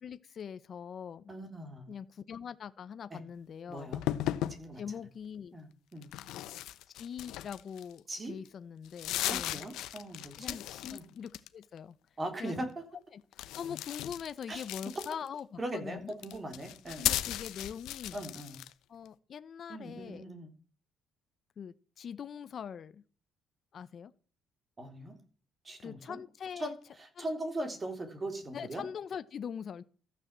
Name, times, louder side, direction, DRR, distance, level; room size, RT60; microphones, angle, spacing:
voice 1, 0.0-1.3 1.9-3.9 4.7-5.6 6.9-9.6 10.4-12.0 12.4-12.5 13.1-16.1 17.0-18.2 18.9-20.2 21.6-23.0 23.7-24.1 25.8-26.7 27.2-27.3 28.5-29.8, left 7 dB, 40° left, 0.9 m, -43 dB
voice 2, 1.3-1.9 3.1-3.2 3.7-4.0 4.5-4.8 5.5-6.1 8.1-8.4 9.2-10.6 10.9-11.0 12.2-12.7 14.5-14.6 15.6-17.2 18.1-18.6 19.7-20.5 24.8-25.2 25.6-26.2 26.6-26.7 27.0-28.8, right 1 dB, 20° right, 3.5 m, -40 dB
sound 1, 3.9-4.6 6.0-8.0 8.4-8.5 8.8-11.0 11.3-11.8 13.3-15.4 16.1-18.7, left 14 dB, 80° left, 1.0 m, -36 dB
14.5 x 9.7 x 7.5 m
cardioid pair, 155°, 0 cm